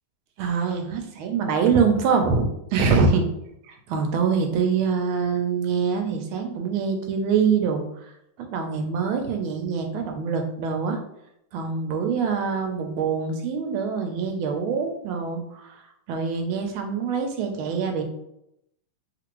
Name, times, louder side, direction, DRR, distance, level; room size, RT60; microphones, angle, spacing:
voice 1, 0.4-3.3 3.7-7.8 8.5-11.0 11.5-15.8 16.1-18.0, right 5 dB, 80° right, 4 dB, 1.4 m, -24 dB
3.3 x 2.5 x 2.9 m, 0.80 s
omnidirectional pair, 2.2 m